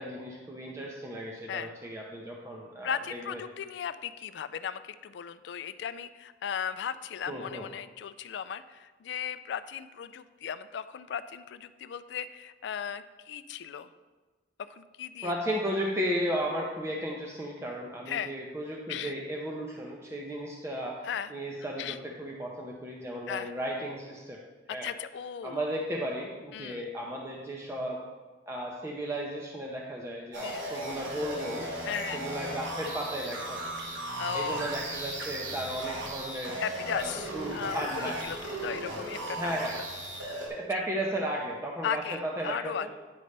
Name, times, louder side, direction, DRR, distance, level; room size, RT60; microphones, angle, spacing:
voice 1, 0.0-3.4 7.3-7.7 15.2-21.0 21.3-24.4 24.7-24.9 25.4-28.0 28.5-31.7 32.1-33.6 34.3-36.6 36.9-37.1 37.3-38.3 39.4-39.8 40.5-42.9, right 1 dB, 15° right, -2 dB, 0.6 m, -35 dB
voice 2, 2.8-13.9 14.7-15.3 18.1-18.3 18.9-19.1 21.0-21.3 21.8-22.0 23.3-23.5 24.7-25.6 26.5-26.9 30.4-30.7 31.8-32.2 34.2-34.7 36.6-39.8 41.8-42.9, left 8 dB, 65° left, 13 dB, 0.3 m, -36 dB
sound 1, 30.3-40.5, right 1 dB, 85° right, 1.4 m, -37 dB
9.6 x 5.2 x 3.3 m, 1.3 s
head